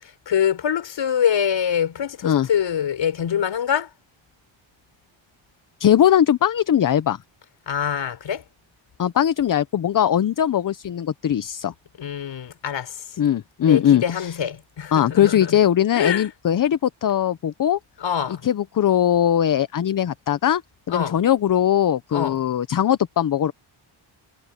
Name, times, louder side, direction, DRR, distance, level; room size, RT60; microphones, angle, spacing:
voice 1, 0.3-3.9 7.7-8.4 12.0-13.2 13.6-15.5 15.9-16.3 18.0-18.4 20.9-21.2 22.1-22.4, left 8 dB, 60° left, 5.0 m, -24 dB
voice 2, 5.8-7.2 9.0-11.7 13.2-14.4 14.9-17.8 18.4-20.6 20.9-23.5, left 10 dB, 40° left, 0.8 m, -20 dB
cardioid pair, 115°, 49 cm